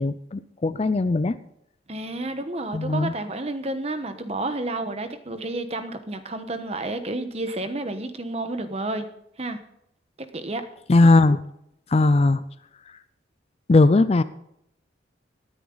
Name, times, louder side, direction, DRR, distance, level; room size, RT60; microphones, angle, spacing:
voice 1, 0.0-1.4 2.7-3.1 10.9-11.4 11.9-12.4 12.9-13.0 13.7-14.2, left 2 dB, 30° left, 14 dB, 0.4 m, -19 dB
voice 2, 1.9-9.1 9.4-9.6 10.2-10.6, right 2 dB, 35° right, 8 dB, 1.1 m, -30 dB
18.5 x 9.5 x 4.0 m, 0.77 s
head